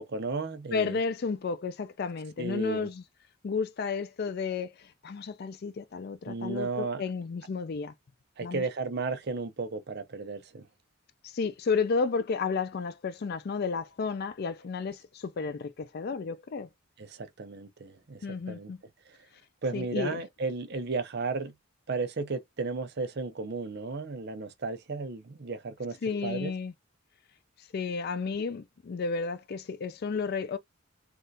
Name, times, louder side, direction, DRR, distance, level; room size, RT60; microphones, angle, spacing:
voice 1, 0.0-1.0 2.4-2.9 6.3-7.0 8.4-10.6 17.0-18.7 19.6-21.5 21.9-26.0 26.2-26.5, right 4 dB, 50° right, 0.6 m, -34 dB
voice 2, 0.7-3.0 3.4-7.9 8.4-8.6 11.2-16.7 18.2-18.8 19.7-20.2 26.0-26.7 27.7-30.6, left 5 dB, 45° left, 0.4 m, -32 dB
3.4 x 2.4 x 2.6 m
head